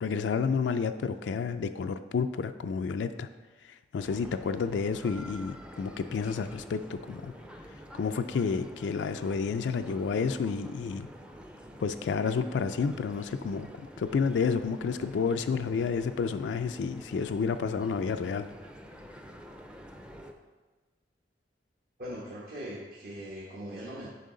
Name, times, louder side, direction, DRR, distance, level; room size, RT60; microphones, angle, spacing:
voice 1, 0.0-3.3 3.6-7.3 7.9-11.1 11.8-18.5, left 5 dB, 80° left, 9 dB, 0.3 m, -30 dB
sound 1, 4.0-20.3, equal, 5° right, 0.5 m, -48 dB
voice 2, 22.0-24.1, equal, 55° right, -5 dB, 1.2 m, -40 dB
9.1 x 5.7 x 3.8 m, 1.3 s
head